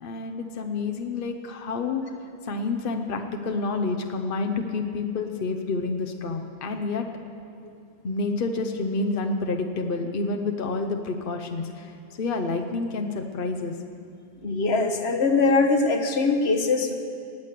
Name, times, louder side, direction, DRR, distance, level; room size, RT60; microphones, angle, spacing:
voice 1, 0.0-2.0 2.5-7.0 8.0-13.7, left 3 dB, 60° left, 4 dB, 1.0 m, -29 dB
voice 2, 14.4-16.9, left 3 dB, 80° left, 4 dB, 1.3 m, -22 dB
19.0 x 8.3 x 6.7 m, 2.5 s
omnidirectional pair, 1.1 m